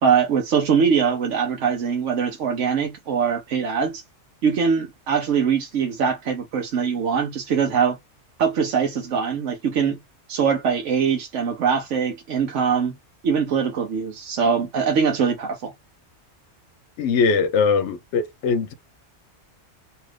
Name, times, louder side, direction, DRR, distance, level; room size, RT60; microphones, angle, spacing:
voice 1, 0.0-4.0 4.4-8.0 8.4-10.0 10.3-12.9 13.2-15.7, right 6 dB, 75° right, 1.1 m, -22 dB
voice 2, 17.0-18.7, left 5 dB, 70° left, 0.8 m, -21 dB
2.8 x 2.5 x 3.2 m
omnidirectional pair, 1.3 m